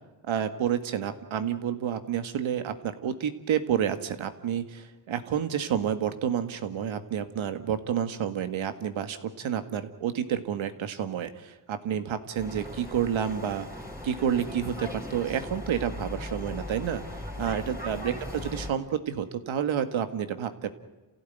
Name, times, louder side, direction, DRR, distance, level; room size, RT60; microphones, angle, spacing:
voice 1, 0.2-13.7 14.0-17.0 17.4-20.7, right 9 dB, 70° right, 9 dB, 2.0 m, -29 dB
sound 1, 12.3-18.7, left 1 dB, 5° right, 4.1 m, -39 dB
28.5 x 16.0 x 9.4 m, 1.2 s
cardioid pair, 120°, 48 cm